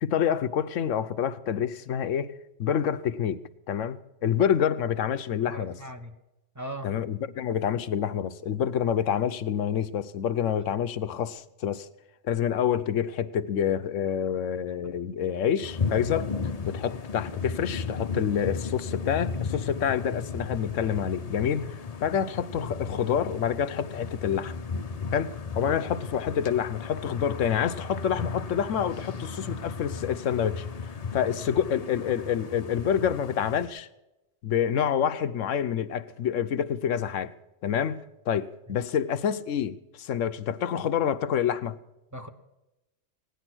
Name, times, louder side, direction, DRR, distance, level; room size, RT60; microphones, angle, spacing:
voice 1, 0.0-2.3 2.6-3.4 3.7-5.8 6.8-11.9 12.2-16.3 16.7-21.7 22.0-24.5 25.1-30.6 31.1-33.9 34.4-37.3 37.6-41.8, left 8 dB, 80° left, 1.1 m, -27 dB
voice 2, 5.4-6.1 6.5-6.9 42.1-42.3, right 1 dB, 15° right, 1.0 m, -38 dB
sound 1, 15.6-33.7, left 5 dB, 35° left, 0.7 m, -35 dB
17.0 x 10.5 x 6.1 m
omnidirectional pair, 1.3 m